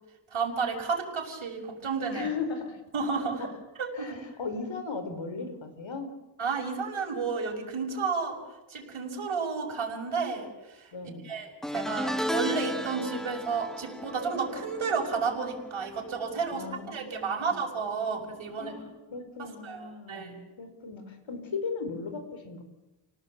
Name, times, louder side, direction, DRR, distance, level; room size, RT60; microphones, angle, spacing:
voice 1, 0.3-2.3 2.9-3.5 3.8-4.2 6.4-8.4 8.7-10.9 11.2-18.7 19.4-20.3, right 5 dB, 70° right, 0 dB, 6.1 m, -32 dB
voice 2, 2.1-2.8 3.4-3.5 3.9-6.1 10.9-11.3 16.5-17.5 18.6-22.6, left 4 dB, 65° left, 7 dB, 4.9 m, -37 dB
sound 1, 11.6-17.0 17.3-17.7 18.9-19.0, equal, ahead, 1.4 m, -36 dB
29.5 x 19.0 x 8.5 m, 1.0 s
wide cardioid pair, 125°, 49 cm